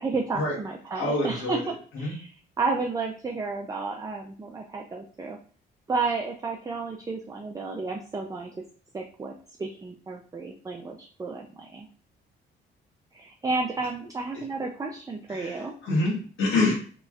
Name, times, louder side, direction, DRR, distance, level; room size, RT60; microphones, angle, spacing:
voice 1, 0.0-2.3 2.6-5.4 5.9-8.6 8.9-9.3 9.6-11.9 13.1-15.7, right 3 dB, 15° right, 1 dB, 0.4 m, -32 dB
voice 2, 0.9-2.2 15.3-16.7, left 2 dB, 75° left, -5 dB, 1.3 m, -27 dB
3.1 x 3.0 x 2.3 m, 0.42 s
cardioid pair, 90°, 20 cm